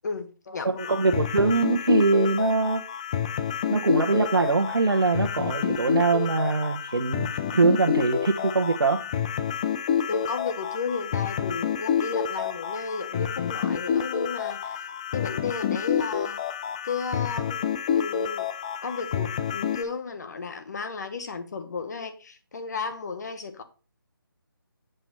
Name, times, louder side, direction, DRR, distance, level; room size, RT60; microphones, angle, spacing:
voice 1, 0.0-0.8 10.1-16.4 16.8-17.6 17.9-18.5 18.8-23.6, left 4 dB, 50° left, 1.4 m, -34 dB
voice 2, 0.6-2.8 3.7-9.0, right 3 dB, 75° right, 1.1 m, -23 dB
sound 1, 0.8-19.8, left 8 dB, 20° left, 0.4 m, -28 dB
8.0 x 4.5 x 5.5 m
figure-of-eight pair, 155°, 12 cm